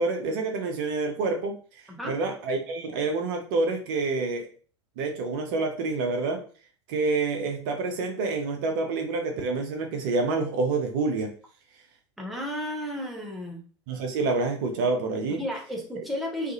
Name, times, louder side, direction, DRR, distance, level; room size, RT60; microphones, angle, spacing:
voice 1, 0.0-1.5 2.0-4.5 5.0-6.4 6.9-11.3 13.9-15.4, right 3 dB, 45° right, 3 dB, 0.5 m, -27 dB
voice 2, 12.2-13.6 15.4-16.5, equal, ahead, -1 dB, 0.7 m, -33 dB
2.4 x 2.3 x 2.7 m, 0.41 s
figure-of-eight pair, 85°, 15 cm